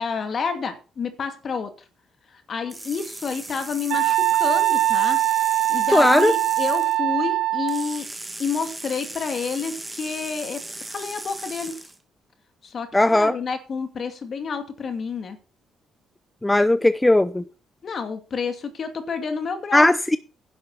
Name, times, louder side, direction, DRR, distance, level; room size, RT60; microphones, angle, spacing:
voice 1, 0.0-1.7 2.5-5.2 5.7-8.1 8.4-11.8 12.6-15.4 17.8-19.9, left 5 dB, 50° left, 2.5 m, -29 dB
sound 1, 2.7-7.0 7.7-12.0, right 2 dB, 15° right, 1.7 m, -37 dB
Wind instrument woodwind instrument, 3.9-8.0, right 14 dB, 85° right, 0.5 m, -22 dB
voice 2, 5.9-6.3 12.9-13.4 16.4-17.4 19.7-20.2, left 1 dB, 10° left, 0.6 m, -17 dB
11.0 x 7.9 x 5.8 m
cardioid pair, 90°, 0 cm